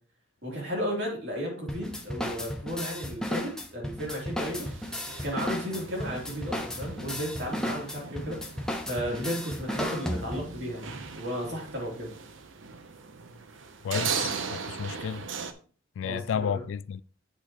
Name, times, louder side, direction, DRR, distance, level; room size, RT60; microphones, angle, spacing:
voice 1, 0.4-4.7 5.2-12.1 16.0-16.6, equal, 60° right, 3.1 m, -34 dB
sound 1, 1.7-10.6, left 1 dB, 5° left, 0.7 m, -34 dB
sound 2, 4.5-15.5, right 6 dB, 85° right, 0.7 m, -39 dB
voice 2, 13.8-15.2 16.0-17.0, left 7 dB, 85° left, 0.3 m, -32 dB
8.0 x 6.6 x 3.0 m
head